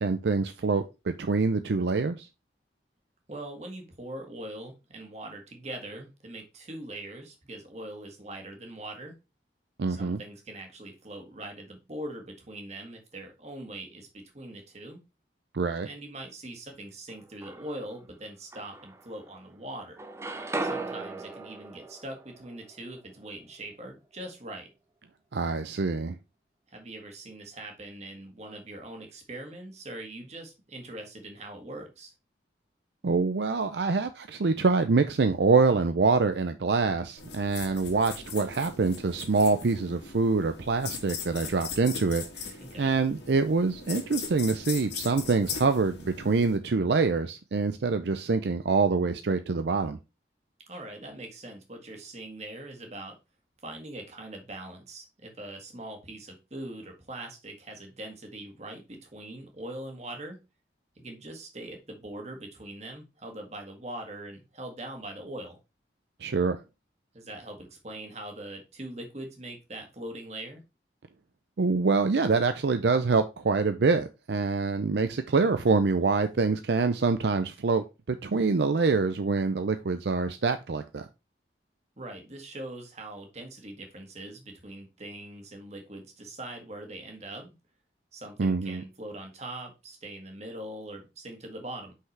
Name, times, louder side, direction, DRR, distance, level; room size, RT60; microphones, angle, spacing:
voice 1, 0.0-2.3 9.8-10.2 15.5-15.9 25.3-26.2 33.0-50.0 66.2-66.6 71.6-81.1 88.4-88.8, right 4 dB, 75° right, 0.5 m, -25 dB
voice 2, 3.3-9.2 9.9-15.0 15.8-20.0 20.6-24.7 26.7-32.1 42.6-42.9 50.7-53.2 53.6-60.4 61.0-65.6 67.1-70.6 82.0-87.5 88.1-91.9, right 1 dB, 40° right, 1.8 m, -42 dB
sound 1, 17.1-18.0 18.5-19.5 19.8-23.8, right 2 dB, 15° right, 0.5 m, -38 dB
sound 2, 37.2-46.6, left 5 dB, 75° left, 1.8 m, -40 dB
5.8 x 5.6 x 3.3 m
head